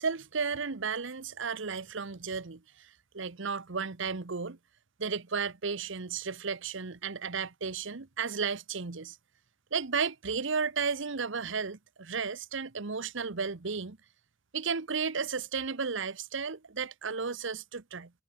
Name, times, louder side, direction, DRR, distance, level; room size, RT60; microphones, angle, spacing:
voice 1, 0.0-4.6 5.0-9.2 9.7-14.0 14.5-18.1, right 5 dB, 65° right, 1.0 m, -33 dB
head